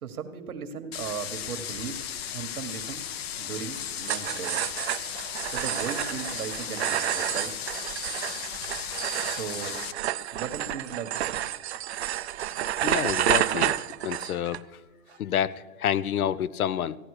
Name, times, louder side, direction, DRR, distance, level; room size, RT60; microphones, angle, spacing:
voice 1, 0.0-2.0 2.3-3.0 3.4-4.6 5.5-7.5 9.2-9.8 10.3-11.4, right 7 dB, 80° right, 9 dB, 1.4 m, -37 dB
sound 1, 0.9-9.9, left 9 dB, 45° left, 0.7 m, -36 dB
sound 2, 4.0-14.6, right 12 dB, 50° right, 0.5 m, -30 dB
voice 2, 12.8-13.8 14.0-14.6 15.2-17.0, left 10 dB, 80° left, 19 dB, 0.7 m, -28 dB
15.5 x 10.0 x 4.8 m, 1.3 s
hypercardioid pair, 145°, 43 cm